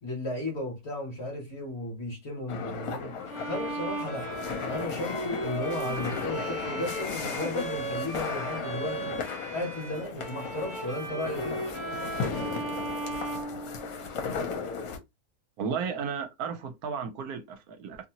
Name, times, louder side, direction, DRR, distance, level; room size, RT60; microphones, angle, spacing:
voice 1, 0.0-3.1 3.5-4.3 4.7-9.2 9.5-11.6, left 1 dB, 45° left, 1.2 m, -34 dB
sound 1, 2.5-15.0, left 5 dB, 70° left, 1.1 m, -36 dB
Bowed string instrument, 3.3-14.3, right 2 dB, 30° right, 0.7 m, -37 dB
voice 2, 15.6-18.1, right 6 dB, 75° right, 1.0 m, -34 dB
2.7 x 2.7 x 2.8 m
omnidirectional pair, 1.7 m